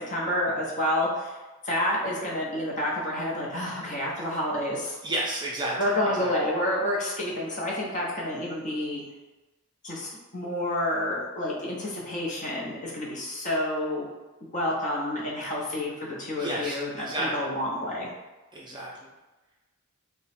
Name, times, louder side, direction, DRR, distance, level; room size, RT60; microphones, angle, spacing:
voice 1, 0.0-1.4 1.6-5.0 5.8-9.0 9.8-14.1 14.5-18.1, left 1 dB, 35° left, -4 dB, 0.8 m, -29 dB
voice 2, 5.0-5.8 6.1-6.3 16.3-17.5 18.5-18.9, right 1 dB, 20° right, -4 dB, 0.6 m, -31 dB
3.0 x 2.2 x 4.2 m, 1.1 s
head